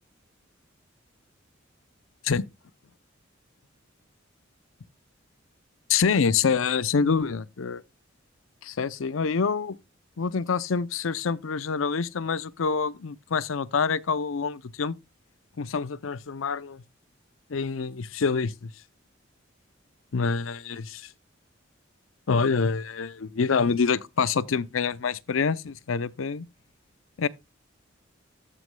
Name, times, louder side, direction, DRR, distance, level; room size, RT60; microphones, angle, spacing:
voice 1, 5.9-7.8 8.6-9.8 10.2-14.9 15.6-16.8 17.5-18.7 20.1-21.1 22.3-26.5 27.2-27.3, left 5 dB, 90° left, 0.6 m, -26 dB
14.0 x 6.2 x 2.2 m
head